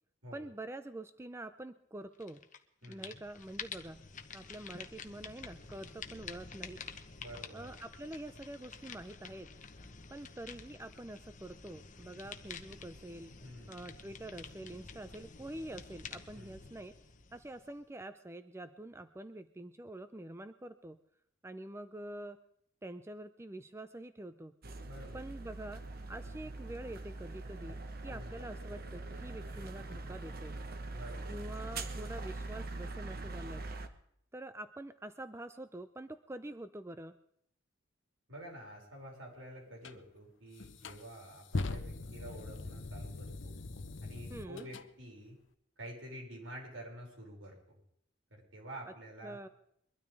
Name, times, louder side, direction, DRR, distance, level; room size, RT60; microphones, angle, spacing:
voice 1, 0.3-2.4 2.9-4.0 4.3-6.8 7.5-9.5 10.1-13.4 13.7-16.9 17.3-21.0 21.4-22.4 22.8-24.5 25.1-25.8 26.1-30.6 31.3-33.6 34.3-37.2 44.3-44.7 49.2-49.5, right 1 dB, 15° right, 10 dB, 0.5 m, -46 dB
sound 1, 2.2-2.6 2.8-17.9, left 5 dB, 40° left, 1.1 m, -49 dB
voice 2, 2.8-3.2 7.2-7.7 13.4-13.9 16.3-16.7 24.8-25.3 28.1-28.5 30.9-31.4 38.3-43.6 44.0-45.4 45.8-47.8 48.3-49.4, right 1 dB, 75° right, -1 dB, 6.1 m, -49 dB
sound 2, 24.6-33.9, right 2 dB, 50° right, 1.2 m, -43 dB
sound 3, 39.8-40.0 40.6-44.9, left 2 dB, 70° left, 0.8 m, -41 dB
23.0 x 13.0 x 3.5 m, 0.70 s
head